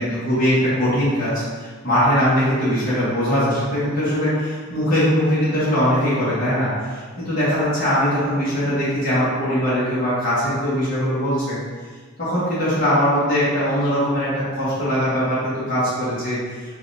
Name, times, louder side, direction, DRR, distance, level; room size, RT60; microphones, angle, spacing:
voice 1, 0.0-11.6 12.2-16.4, equal, 40° left, -11 dB, 1.4 m, -21 dB
4.8 x 2.9 x 3.3 m, 1.5 s
head